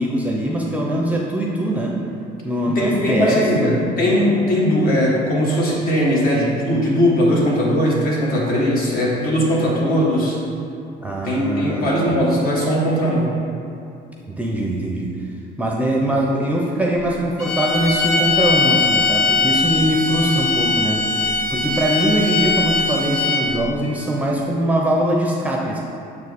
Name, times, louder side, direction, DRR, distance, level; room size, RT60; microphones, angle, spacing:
voice 1, 0.0-2.0 2.4-3.8 11.0-11.9 14.3-15.2 15.6-25.8, right 1 dB, 10° right, -2 dB, 0.5 m, -22 dB
voice 2, 2.7-10.4 11.2-13.3, equal, 60° left, -4 dB, 1.5 m, -19 dB
sound 1, 17.4-23.6, left 3 dB, 85° left, 1.3 m, -20 dB
6.6 x 4.5 x 3.5 m, 2.6 s
cardioid pair, 110°, 17 cm